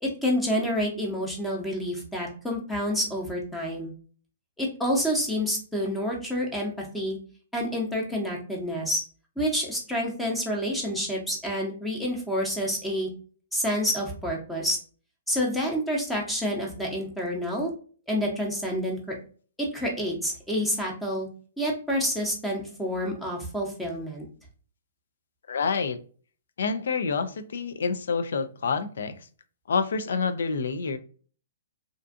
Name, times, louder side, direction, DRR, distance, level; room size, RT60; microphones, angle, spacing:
voice 1, 0.0-3.9 4.6-7.2 7.5-9.0 9.4-13.1 13.5-14.8 15.3-17.7 18.1-19.1 19.6-21.3 21.6-24.3, equal, 5° left, -1 dB, 0.7 m, -28 dB
voice 2, 25.5-26.0 26.6-29.2 29.7-31.0, left 5 dB, 75° left, 10 dB, 0.3 m, -27 dB
2.5 x 2.4 x 2.4 m, 0.41 s
hypercardioid pair, 145°, 0 cm